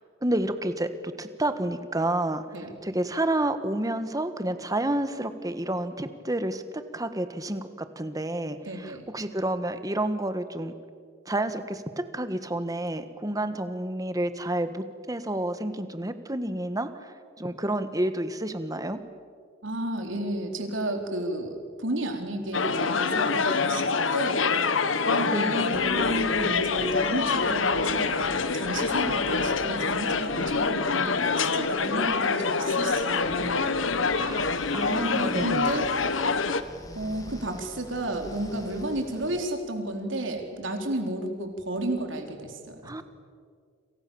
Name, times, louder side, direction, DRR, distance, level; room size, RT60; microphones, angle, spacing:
voice 1, 0.2-2.5 2.8-10.7 11.2-19.0 25.2-25.6 34.1-35.7 42.8-43.0, right 1 dB, 20° right, 10 dB, 1.5 m, -30 dB
voice 2, 8.7-9.0 19.6-24.5 25.1-28.3 28.5-33.8 34.8-35.9 36.1-36.3 36.9-42.9, right 1 dB, 70° right, 4 dB, 3.9 m, -32 dB
sound 1, 22.5-36.6, left 4 dB, 80° left, 1.3 m, -26 dB
sound 2, 25.7-39.4, left 1 dB, 20° left, 2.7 m, -46 dB
29.5 x 27.5 x 7.1 m, 2.1 s
head